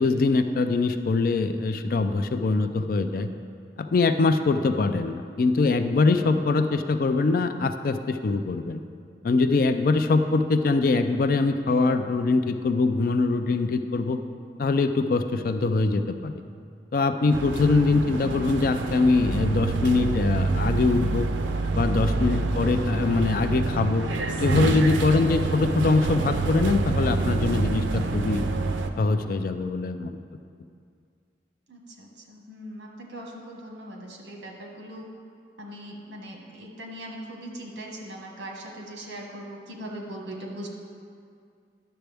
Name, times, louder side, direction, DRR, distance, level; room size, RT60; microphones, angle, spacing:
voice 1, 0.0-3.3 3.8-8.8 9.2-14.2 14.6-16.3 16.9-21.3 21.8-24.1 24.4-28.4 29.0-30.2, left 3 dB, 50° left, 8 dB, 0.3 m, -23 dB
sound 1, 17.3-28.9, right 3 dB, 85° right, 0.5 m, -27 dB
voice 2, 31.7-35.1 35.6-40.7, right 1 dB, 70° right, 0 dB, 1.3 m, -40 dB
10.0 x 6.8 x 3.4 m, 2.3 s
head